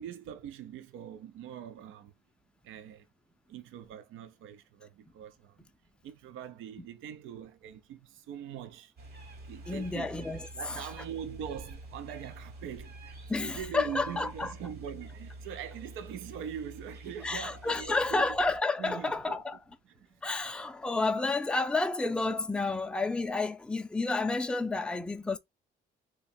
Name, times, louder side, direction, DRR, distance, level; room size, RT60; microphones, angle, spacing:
voice 1, 0.0-2.1 2.6-3.1 3.5-5.7 6.0-8.9 9.5-10.2 10.5-18.4 18.8-19.4 19.8-20.2, right 9 dB, 85° right, 0.5 m, -42 dB
sound 1, 9.0-18.6, right 2 dB, 55° right, 1.1 m, -47 dB
voice 2, 9.7-10.8 13.3-14.5 17.2-19.6 20.2-25.4, left 3 dB, 5° left, 0.4 m, -30 dB
2.8 x 2.3 x 4.1 m
cardioid pair, 90°, 20 cm